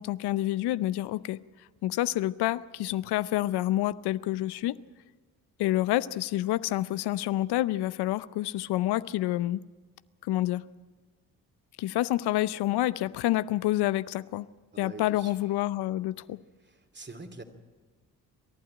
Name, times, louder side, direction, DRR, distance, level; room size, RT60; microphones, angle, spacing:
voice 1, 0.0-1.4 1.8-4.8 5.6-9.6 10.2-10.6 11.8-14.5 14.8-16.4, left 15 dB, 85° left, 17 dB, 0.6 m, -28 dB
voice 2, 14.7-15.3 16.6-17.4, right 3 dB, 30° right, 7 dB, 2.7 m, -45 dB
28.0 x 12.0 x 8.9 m, 1.3 s
supercardioid pair, 55°, 38 cm